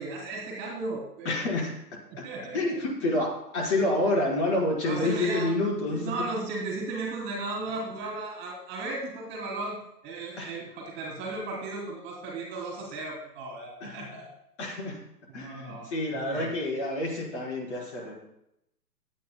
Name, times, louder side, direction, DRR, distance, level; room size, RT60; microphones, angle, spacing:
voice 1, 0.0-1.3 2.1-2.7 4.8-5.5 5.9-9.8 10.0-14.3 15.3-15.9 16.2-16.5, right 2 dB, 20° right, -2 dB, 3.1 m, -35 dB
voice 2, 1.2-1.7 2.5-6.1 10.4-10.5 13.8-14.2 14.6-15.0 15.3-18.2, left 1 dB, 45° left, -1 dB, 4.3 m, -28 dB
23.5 x 9.1 x 2.2 m, 0.79 s
hypercardioid pair, 135°, 47 cm